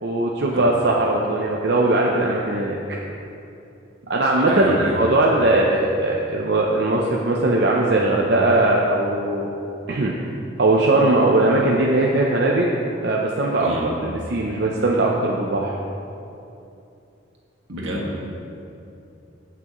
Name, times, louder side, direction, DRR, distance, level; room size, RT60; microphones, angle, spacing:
voice 1, 0.0-2.8 4.1-9.5 9.9-10.1 10.6-12.7 13.0-15.7, right 2 dB, 55° right, -2 dB, 0.6 m, -19 dB
voice 2, 4.5-5.1 5.4-5.5 13.6-13.9 17.7-18.2, equal, 80° right, -3 dB, 1.8 m, -29 dB
14.5 x 6.1 x 3.1 m, 2.7 s
head